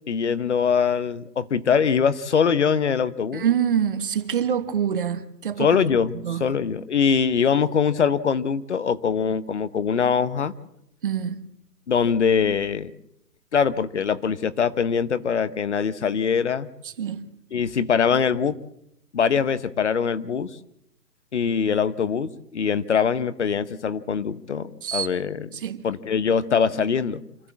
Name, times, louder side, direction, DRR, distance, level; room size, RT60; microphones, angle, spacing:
voice 1, 0.1-3.4 5.6-10.5 11.9-12.9 13.5-16.7 17.5-18.6 19.1-20.5 21.3-25.5 25.8-27.2, left 6 dB, 45° left, 1.0 m, -23 dB
voice 2, 3.3-5.9 6.1-6.4 11.0-11.4 16.8-17.3 24.8-25.1 25.5-25.9, right 8 dB, 35° right, 1.1 m, -26 dB
26.5 x 14.0 x 7.3 m
figure-of-eight pair, 150°, 49 cm